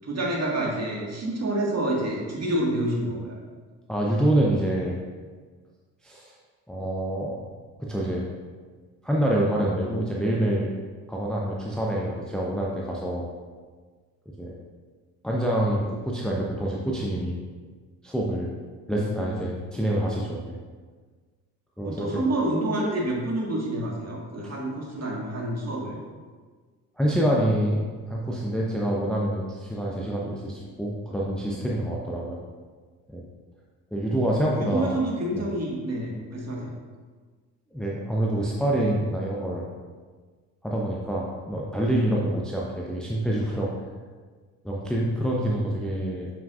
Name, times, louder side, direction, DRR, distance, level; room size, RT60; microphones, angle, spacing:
voice 1, 0.0-3.4 18.9-19.4 21.9-26.0 34.4-36.7, right 1 dB, 30° right, -2 dB, 1.8 m, -28 dB
voice 2, 3.9-5.0 6.0-6.3 6.7-7.4 7.8-8.3 9.0-10.7 11.1-13.3 14.4-14.5 15.2-17.4 18.0-18.5 18.9-20.6 21.8-22.2 27.0-27.8 28.1-32.4 33.1-33.3 33.9-35.0 35.3-35.5 37.7-39.7 40.6-43.7 44.6-46.3, right 1 dB, ahead, -4 dB, 0.8 m, -26 dB
7.0 x 6.0 x 2.5 m, 1.5 s
figure-of-eight pair, 50°, 48 cm